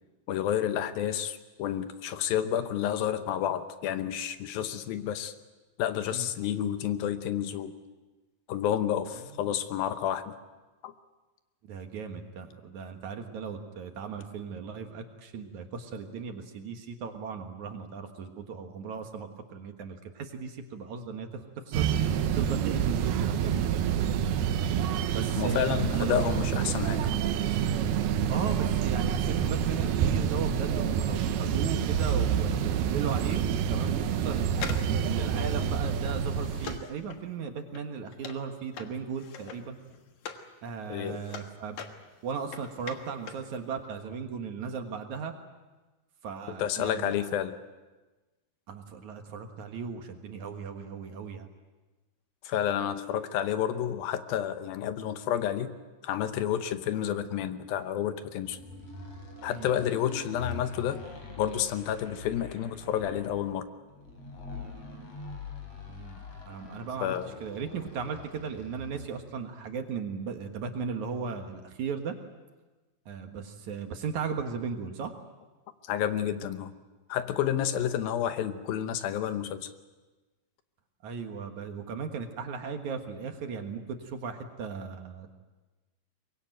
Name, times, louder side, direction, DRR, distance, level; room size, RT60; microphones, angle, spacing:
voice 1, 0.3-5.4 5.8-7.8 8.5-10.3 10.8-10.9 25.4-27.1 40.9-41.2 46.6-47.5 52.4-55.7 56.0-58.6 59.4-61.0 61.4-63.7 67.0-67.4 75.8-76.7 77.1-79.7, left 10 dB, 75° left, 10 dB, 2.7 m, -30 dB
voice 2, 11.6-21.9 22.3-24.2 25.1-26.3 28.3-34.5 35.0-39.8 40.6-41.8 42.2-45.3 46.2-47.1 48.7-51.5 59.5-59.7 65.9-66.2 66.5-67.1 67.4-72.1 73.1-75.1 81.0-85.3, right 6 dB, 60° right, 5 dB, 2.6 m, -37 dB
sound 1, 21.7-36.8, right 8 dB, 90° right, 3.1 m, -28 dB
sound 2, 34.5-40.5 40.8-43.5 43.8-43.9, left 7 dB, 60° left, 2.6 m, -43 dB
sound 3, 58.4-69.2, left 2 dB, 45° left, 5.8 m, -44 dB
23.5 x 21.5 x 9.1 m, 1.2 s
omnidirectional pair, 4.3 m